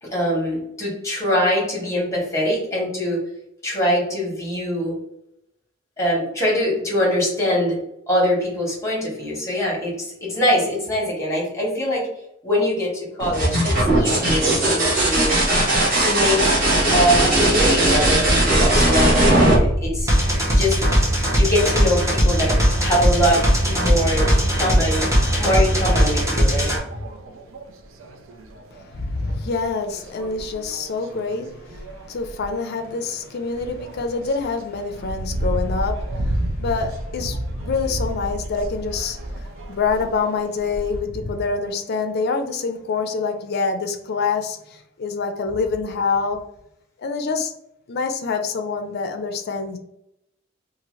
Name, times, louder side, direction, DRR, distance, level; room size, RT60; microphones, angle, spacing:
voice 1, 0.0-3.2 3.6-4.9 6.0-7.8 8.1-12.1 12.4-15.3 16.0-20.1 20.6-20.8 21.3-25.1 25.4-26.7, equal, 15° left, -3 dB, 1.2 m, -23 dB
sound 1, 13.2-20.8 22.6-23.1, right 1 dB, 50° right, 1.1 m, -18 dB
sound 2, 20.1-26.8, equal, 15° right, 0.7 m, -19 dB
sound 3, 22.2-41.0, right 1 dB, 75° right, 0.5 m, -32 dB
voice 2, 28.8-37.4 37.6-46.4 47.0-47.5 47.9-49.8, left 4 dB, 55° left, 7 dB, 0.4 m, -26 dB
2.7 x 2.4 x 3.0 m, 0.79 s
head